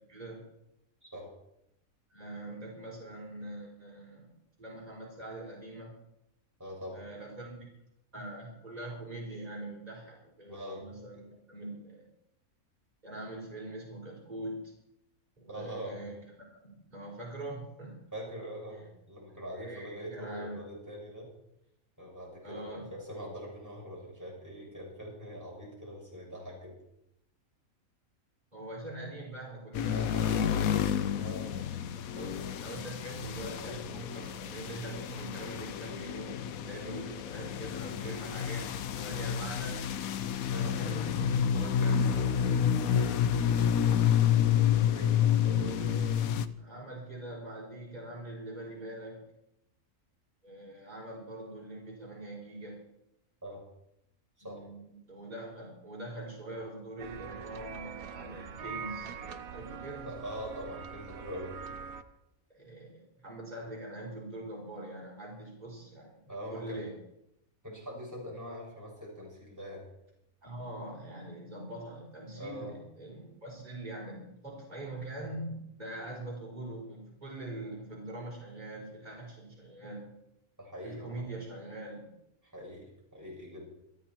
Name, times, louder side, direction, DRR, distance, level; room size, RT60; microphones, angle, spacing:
voice 1, 0.1-0.4 2.1-4.3 4.6-5.9 6.9-7.7 8.1-12.1 13.0-14.7 15.4-16.2 16.6-18.0 19.5-20.7 22.4-22.9 28.5-31.0 32.1-32.3 32.6-39.9 40.5-42.5 45.6-49.2 50.4-52.8 54.4-59.1 59.5-60.1 62.5-66.2 66.5-66.9 70.4-80.1 80.8-82.1, right 1 dB, 30° right, -3 dB, 4.9 m, -43 dB
voice 2, 6.6-7.0 10.5-10.8 15.5-16.0 18.1-21.3 22.0-26.7 29.9-30.3 31.2-31.7 35.0-35.1 36.6-37.0 40.5-40.8 42.8-43.1 43.6-43.7 44.9-45.8 53.4-53.6 54.4-54.6 60.1-61.5 66.3-66.9 67.6-69.9 72.4-72.7 80.6-81.2 82.4-83.7, equal, 10° right, -4 dB, 7.0 m, -43 dB
sound 1, 29.7-46.5, left 9 dB, 80° left, 1.2 m, -29 dB
sound 2, 57.0-62.0, right 6 dB, 80° right, 1.4 m, -43 dB
27.5 x 9.5 x 4.5 m, 0.83 s
omnidirectional pair, 1.5 m